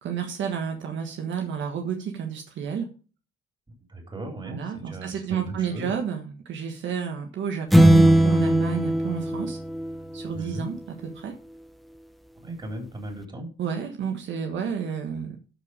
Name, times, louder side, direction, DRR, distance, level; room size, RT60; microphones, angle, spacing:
voice 1, 0.0-2.9 4.4-9.6 10.1-10.8 11.2-11.3 13.6-15.4, right 7 dB, 70° right, 4 dB, 1.5 m, -31 dB
voice 2, 3.9-5.9 10.3-10.7 12.4-13.5, right 2 dB, 25° right, 2 dB, 3.8 m, -37 dB
sound 1, 7.7-10.4, right 1 dB, ahead, 0.8 m, -19 dB
13.0 x 5.1 x 4.9 m, 0.37 s
cardioid pair, 90°, 20 cm